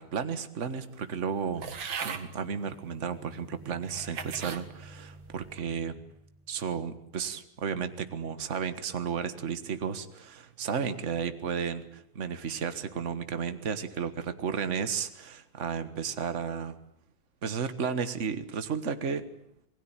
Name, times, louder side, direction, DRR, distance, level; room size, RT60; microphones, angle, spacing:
voice 1, 0.0-1.6 2.0-6.0 6.5-16.8 17.4-19.2, right 6 dB, 40° right, 11 dB, 1.8 m, -33 dB
sound 1, 1.6-2.3 3.1-3.2 3.8-4.6 5.2-5.6, right 6 dB, 80° right, 2.5 m, -38 dB
sound 2, 2.0-6.7, right 1 dB, 5° right, 1.7 m, -51 dB
27.0 x 20.0 x 9.0 m, 0.69 s
omnidirectional pair, 2.1 m